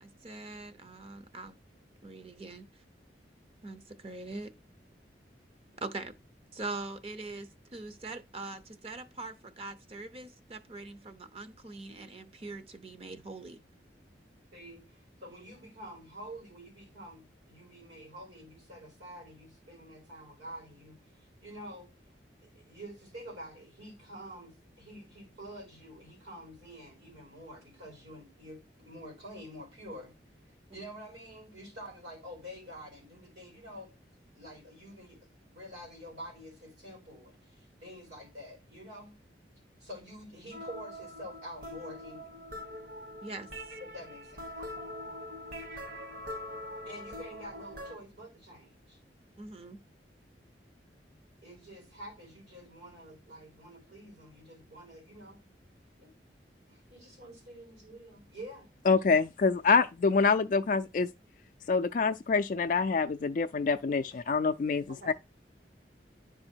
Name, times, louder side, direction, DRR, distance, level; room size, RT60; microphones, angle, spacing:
voice 1, 0.0-1.5 2.0-2.7 3.6-4.5 5.8-6.1 6.5-13.6 43.2-43.5 49.4-49.8, right 3 dB, 35° right, 0.7 m, -42 dB
voice 2, 14.5-21.9 22.4-30.1 30.5-33.9 34.3-35.2 35.5-39.2 39.8-42.3 43.8-44.5 46.9-49.0 51.4-55.4 56.0-56.1 56.7-58.7 64.9-65.1, equal, 80° right, 3.7 m, -48 dB
sound 1, 40.5-47.9, left 1 dB, 50° right, 1.3 m, -43 dB
voice 3, 58.9-61.1 61.7-64.9, left 4 dB, 45° left, 0.3 m, -26 dB
10.5 x 4.7 x 4.5 m
head